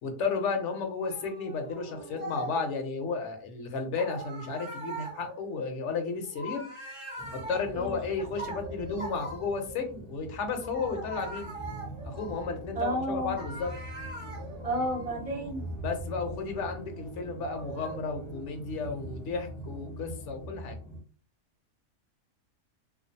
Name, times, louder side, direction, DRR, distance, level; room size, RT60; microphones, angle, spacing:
voice 1, 0.0-6.6 7.3-11.5 12.0-13.7 15.8-20.8, left 4 dB, 65° left, 5 dB, 0.8 m, -33 dB
sound 1, 1.0-2.8 4.0-9.9 10.6-13.0 13.4-18.4, right 1 dB, 30° right, 0.7 m, -43 dB
sound 2, 7.2-21.0, right 1 dB, 5° left, 0.4 m, -43 dB
voice 2, 12.7-13.3 14.6-15.6, right 1 dB, 65° right, 0 dB, 0.3 m, -31 dB
2.4 x 2.2 x 2.6 m, 0.39 s
omnidirectional pair, 1.5 m